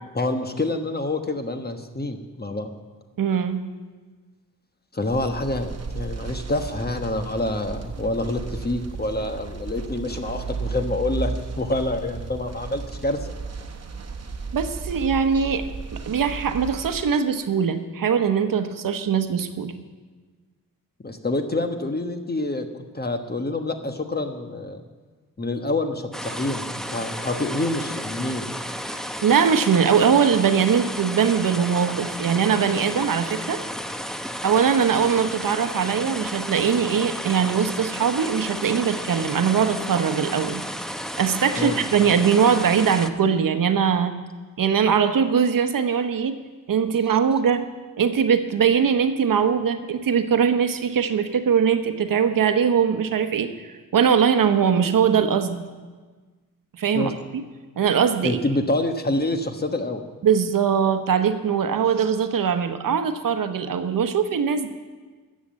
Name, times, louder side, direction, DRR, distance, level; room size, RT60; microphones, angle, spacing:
voice 1, 0.1-2.7 4.9-13.3 21.0-22.7 22.9-24.8 25.4-28.5 41.6-41.8 56.9-57.1 58.2-60.0, left 2 dB, 25° left, 6 dB, 1.2 m, -27 dB
voice 2, 3.2-3.6 14.5-15.6 15.9-19.7 29.2-33.6 34.4-40.6 41.2-44.1 44.6-46.4 46.7-47.6 48.0-53.5 53.9-55.6 56.8-57.1 57.8-58.4 60.2-64.7, right 7 dB, 70° right, 8 dB, 0.9 m, -21 dB
sound 1, 5.1-17.0, right 4 dB, 45° right, 1.2 m, -34 dB
sound 2, 26.1-43.1, equal, ahead, 0.7 m, -33 dB
12.5 x 7.5 x 7.5 m, 1.4 s
cardioid pair, 65°, 35 cm